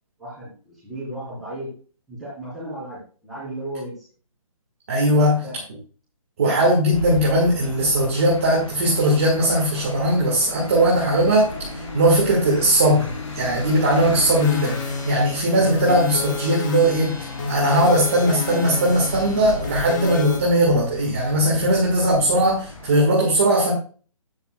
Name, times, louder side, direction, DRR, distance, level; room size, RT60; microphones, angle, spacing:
voice 1, 0.2-1.7 2.1-4.0 5.1-5.6, right 1 dB, ahead, -11 dB, 3.9 m, -35 dB
voice 2, 4.9-5.4 6.4-23.7, right 1 dB, 20° right, -2 dB, 1.7 m, -19 dB
sound 1, 6.9-23.0, left 2 dB, 60° left, 3.8 m, -35 dB
sound 2, 14.4-20.4, left 5 dB, 30° left, 1.6 m, -31 dB
11.5 x 9.7 x 2.3 m, 0.39 s
hypercardioid pair, 180°, 18 cm